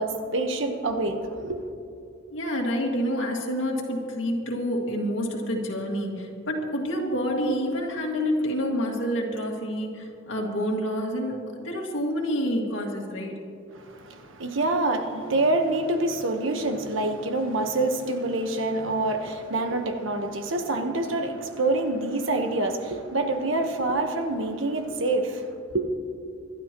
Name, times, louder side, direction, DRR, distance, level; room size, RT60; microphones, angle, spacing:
voice 1, 0.0-1.7 13.7-25.9, right 2 dB, 80° right, 5 dB, 1.2 m, -26 dB
voice 2, 2.3-13.4, equal, 70° left, 0 dB, 2.2 m, -28 dB
25.5 x 12.0 x 3.0 m, 2.5 s
head